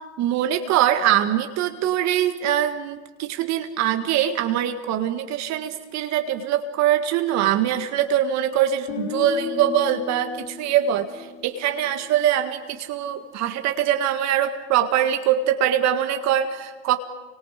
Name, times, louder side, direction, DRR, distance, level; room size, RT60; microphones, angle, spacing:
voice 1, 0.2-17.0, right 10 dB, 55° right, 7 dB, 1.7 m, -23 dB
Guitar, 8.9-12.8, left 8 dB, 85° left, 3.0 m, -36 dB
29.0 x 24.5 x 5.0 m, 1.2 s
hypercardioid pair, 100°, 34 cm